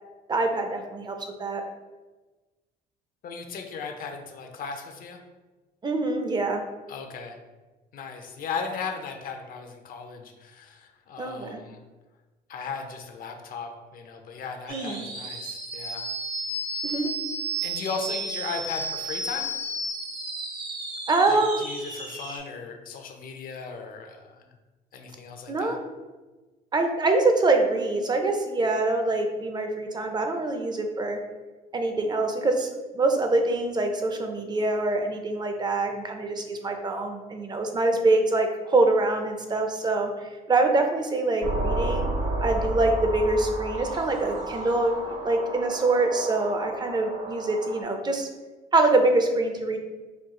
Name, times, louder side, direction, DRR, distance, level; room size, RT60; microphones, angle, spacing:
voice 1, 0.3-1.6 5.8-6.6 11.2-11.6 14.7-15.0 16.8-17.1 21.1-21.7 25.5-25.8 26.7-31.2 31.7-32.7 32.9-40.1 40.5-42.1 42.4-48.3 48.7-49.8, right 2 dB, 25° right, 4 dB, 0.5 m, -24 dB
voice 2, 3.2-5.2 6.9-7.4 7.9-11.8 12.5-16.1 17.6-19.5 21.3-24.4 24.9-25.8, left 5 dB, 60° left, 4 dB, 0.6 m, -36 dB
sound 1, 14.7-22.4, right 2 dB, 80° right, 1.1 m, -33 dB
sound 2, 41.4-47.8, right 2 dB, 50° right, 0.8 m, -31 dB
4.4 x 2.3 x 3.7 m, 1.2 s
cardioid pair, 110°, 17 cm